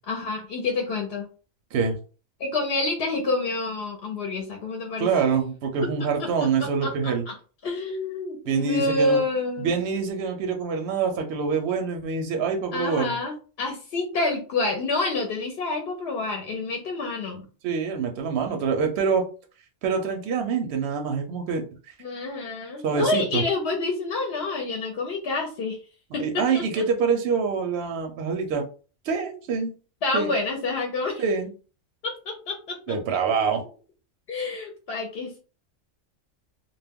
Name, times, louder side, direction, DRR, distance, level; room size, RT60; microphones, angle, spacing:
voice 1, 0.1-1.3 2.4-5.1 6.2-6.3 6.6-7.3 7.6-9.7 12.7-17.5 22.0-25.8 26.1-26.6 30.0-31.2 32.0-33.0 34.3-35.4, left 2 dB, 60° left, 2 dB, 0.8 m, -28 dB
voice 2, 5.0-7.2 8.5-9.2 9.6-13.1 17.6-19.3 19.8-21.9 22.8-23.4 26.2-28.7 29.0-29.7 30.1-30.3 31.2-31.5 32.9-33.6, right 5 dB, 65° right, 4 dB, 0.7 m, -25 dB
2.2 x 2.1 x 3.4 m, 0.37 s
omnidirectional pair, 1.3 m